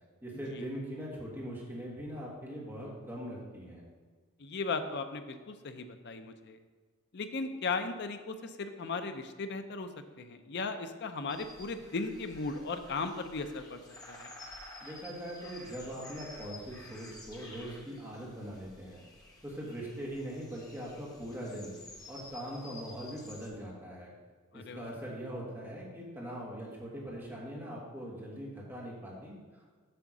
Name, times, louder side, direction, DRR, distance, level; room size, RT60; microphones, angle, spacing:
voice 1, 0.2-3.8 14.8-19.0 19.4-21.7 22.1-24.1 24.5-29.7, equal, 10° right, -4 dB, 1.5 m, -41 dB
voice 2, 4.4-6.6 7.1-9.9 10.2-13.8 14.1-14.3 24.5-25.0, left 4 dB, 50° left, 8 dB, 0.5 m, -37 dB
sound 1, 11.3-23.5, left 1 dB, 15° left, 0.8 m, -52 dB
7.8 x 3.7 x 6.0 m, 1.5 s
head